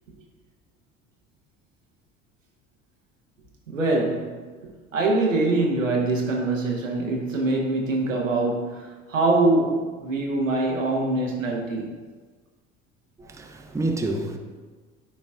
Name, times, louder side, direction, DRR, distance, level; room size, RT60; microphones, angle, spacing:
voice 1, 3.7-4.4 4.9-11.9, right 2 dB, 90° right, 0.9 m, -24 dB
voice 2, 13.2-14.4, right 2 dB, 10° right, 0.6 m, -28 dB
9.8 x 4.1 x 2.3 m
figure-of-eight pair, 60°, 37 cm